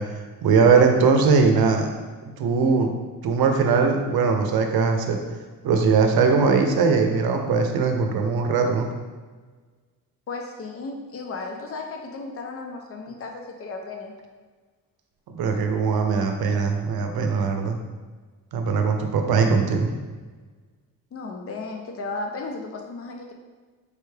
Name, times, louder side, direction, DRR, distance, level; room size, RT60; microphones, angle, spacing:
voice 1, 0.0-1.9 2.4-2.9 3.2-5.2 5.6-8.9 15.3-17.8 18.5-19.9, right 5 dB, 90° right, 4 dB, 0.7 m, -20 dB
voice 2, 10.3-14.1 21.1-23.3, left 3 dB, 40° left, 3 dB, 0.6 m, -34 dB
4.9 x 3.4 x 3.3 m, 1.4 s
wide cardioid pair, 175°, 36 cm